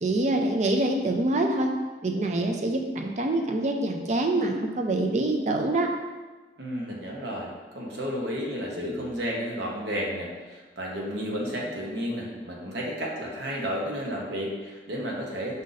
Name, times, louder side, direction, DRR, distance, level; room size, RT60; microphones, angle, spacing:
voice 1, 0.0-1.7 2.0-5.9, right 2 dB, 40° right, 3 dB, 0.4 m, -25 dB
voice 2, 6.6-15.6, equal, 75° right, -2 dB, 0.9 m, -32 dB
5.3 x 2.5 x 3.9 m, 1.3 s
head